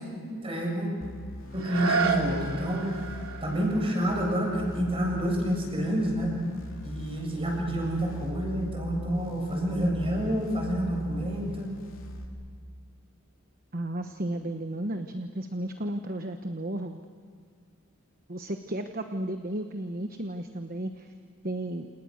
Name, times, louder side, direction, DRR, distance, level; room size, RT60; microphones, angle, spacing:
voice 1, 0.2-0.9 1.5-2.9 3.4-6.3 6.8-11.7, equal, 25° right, 0 dB, 7.5 m, -28 dB
sound 1, 1.0-12.3, equal, 65° left, 3.5 m, -41 dB
sound 2, 1.5-7.2 7.7-7.8, right 4 dB, 75° right, 3.3 m, -34 dB
voice 2, 13.7-17.0 18.3-21.1 21.4-21.9, right 1 dB, 40° right, 6 dB, 1.2 m, -33 dB
29.0 x 28.5 x 6.5 m, 2.1 s
head